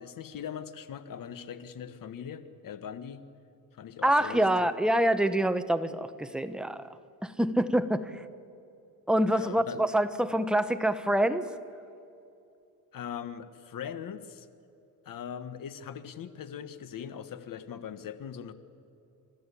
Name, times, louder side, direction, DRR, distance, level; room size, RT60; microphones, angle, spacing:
voice 1, 0.0-3.2 3.7-4.7 9.2-9.8 12.9-14.5 15.0-18.5, left 8 dB, 65° left, 12 dB, 1.4 m, -41 dB
voice 2, 4.0-6.9 7.2-8.2 9.1-11.5, right 1 dB, ahead, 10 dB, 1.0 m, -26 dB
30.0 x 13.5 x 8.5 m, 2.7 s
cardioid pair, 100°, 36 cm